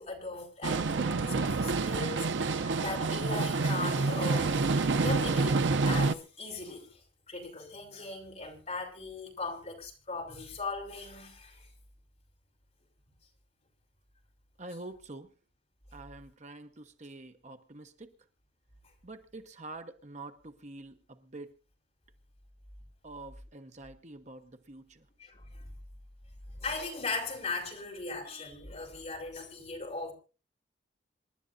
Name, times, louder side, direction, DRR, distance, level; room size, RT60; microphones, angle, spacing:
voice 1, 0.0-11.7 25.2-25.7 26.4-30.1, left 3 dB, 35° left, 4.6 m, -39 dB
sound 1, 0.6-6.1, right 3 dB, 70° right, 0.6 m, -28 dB
voice 2, 14.6-15.3 15.9-18.1 19.0-21.6 23.0-25.1, right 2 dB, 40° right, 1.0 m, -46 dB
27.5 x 11.5 x 2.6 m
head